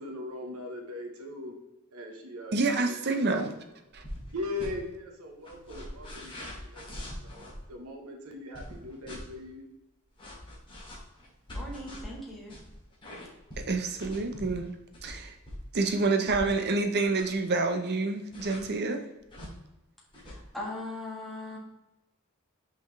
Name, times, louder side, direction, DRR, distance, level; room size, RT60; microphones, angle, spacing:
voice 1, 0.0-1.5 1.9-3.4 4.3-6.9 7.2-9.6, left 2 dB, 90° right, 3 dB, 1.2 m, -40 dB
voice 2, 2.5-3.5 3.9-4.0 13.6-14.7 15.0-15.3 15.7-19.1, right 3 dB, 50° right, 6 dB, 0.7 m, -28 dB
sound 1, 3.9-4.3 4.6-4.7 5.4-7.6 8.5-9.2 10.2-16.6 16.9-17.4 18.3-18.6 19.2-19.5 20.1-20.4, left 1 dB, 25° left, 2.2 m, -42 dB
voice 3, 11.5-12.6 20.2-21.6, left 1 dB, ahead, -5 dB, 1.5 m, -39 dB
5.6 x 5.3 x 3.3 m, 0.95 s
head